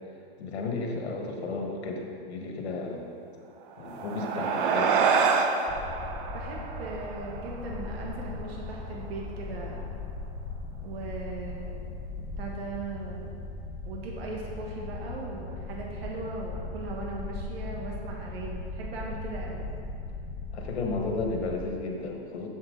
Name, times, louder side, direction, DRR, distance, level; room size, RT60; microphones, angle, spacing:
voice 1, 0.4-3.1 3.8-5.0 9.6-9.7 20.5-22.5, left 3 dB, 85° left, 1 dB, 1.6 m, -33 dB
sound 1, 3.7-8.5, right 5 dB, 55° right, 0.7 m, -28 dB
voice 2, 4.3-5.3 6.3-9.8 10.8-11.7 12.2-13.4 13.8-19.6, right 3 dB, 70° right, -2 dB, 1.5 m, -39 dB
sound 2, 5.7-21.6, left 3 dB, 15° left, 0.5 m, -38 dB
7.6 x 7.3 x 3.9 m, 2.5 s
supercardioid pair, 155°, 32 cm